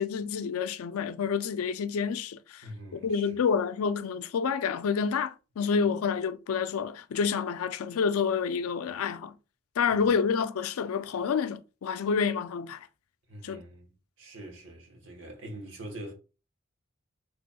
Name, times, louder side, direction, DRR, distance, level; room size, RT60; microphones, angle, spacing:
voice 1, 0.0-2.6 2.9-9.3 9.8-12.9 13.4-13.6, left 6 dB, 85° left, 0.4 m, -28 dB
voice 2, 2.6-3.4 9.9-10.1 13.3-13.9 14.2-16.1, right 1 dB, 60° right, 1.2 m, -44 dB
3.9 x 3.4 x 2.2 m
head